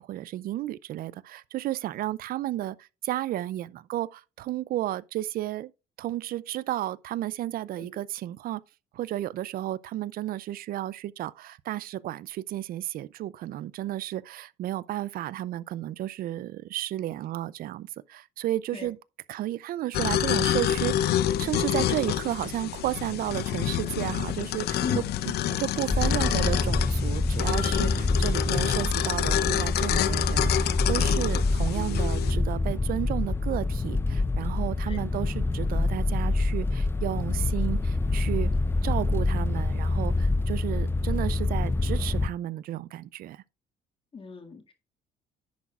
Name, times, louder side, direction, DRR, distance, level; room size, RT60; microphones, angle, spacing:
voice 1, 0.0-5.7 6.0-8.6 8.9-19.0 19.3-24.8 25.5-38.5 38.8-43.4, right 13 dB, 60° right, 0.4 m, -33 dB
sound 1, 19.9-32.3, left 11 dB, 70° left, 0.7 m, -28 dB
sound 2, 25.9-42.3, left 2 dB, 15° left, 0.4 m, -26 dB
sound 3, 31.8-33.9, right 5 dB, 35° right, 2.4 m, -46 dB
voice 2, 44.1-44.7, left 5 dB, 30° left, 2.0 m, -36 dB
10.5 x 8.2 x 2.4 m
cardioid pair, 110°, 17 cm